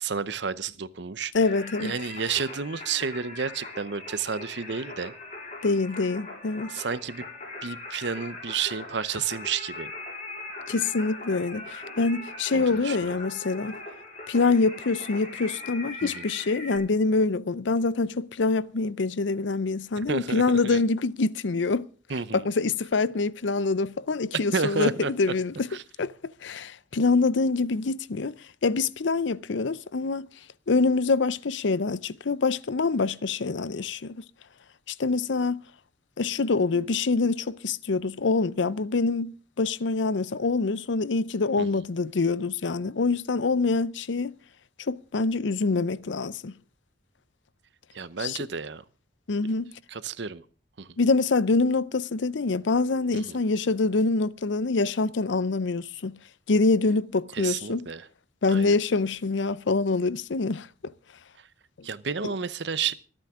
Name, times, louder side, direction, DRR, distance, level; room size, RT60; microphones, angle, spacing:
voice 1, 0.0-1.3 1.8-5.1 6.7-7.3 7.6-9.9 12.5-13.1 16.0-16.2 20.1-20.8 22.1-22.4 24.5-25.1 25.7-25.8 41.6-41.7 47.9-48.8 49.9-50.4 50.8-50.9 53.1-53.4 57.3-58.1 58.5-58.7 61.8-62.9, right 5 dB, 70° right, 0.8 m, -31 dB
voice 2, 1.3-1.9 5.6-6.7 10.7-13.8 14.3-21.9 22.3-25.7 26.0-28.3 28.6-30.3 30.7-34.2 34.9-35.6 36.2-44.4 44.9-46.5 48.2-48.5 49.3-49.7 51.0-56.1 56.5-57.9 58.4-60.7 61.8-61.9 62.2-62.3, left 3 dB, 75° left, 0.6 m, -25 dB
Singing, 1.3-16.8, left 2 dB, 40° left, 4.5 m, -40 dB
25.0 x 8.9 x 3.7 m
head